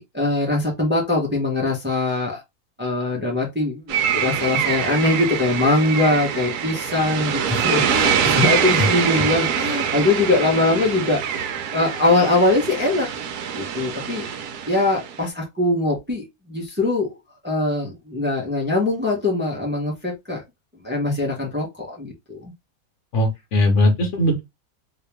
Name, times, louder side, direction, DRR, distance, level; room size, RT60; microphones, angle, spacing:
voice 1, 0.0-2.4 2.8-13.1 13.5-14.3 14.7-17.1 17.4-20.4 20.8-22.5, left 2 dB, 10° right, 0.9 m, -22 dB
sound 1, 3.9-15.2, right 8 dB, 85° right, 1.2 m, -24 dB
voice 2, 23.1-24.4, left 1 dB, 55° left, 1.3 m, -19 dB
3.0 x 2.9 x 3.3 m
omnidirectional pair, 1.6 m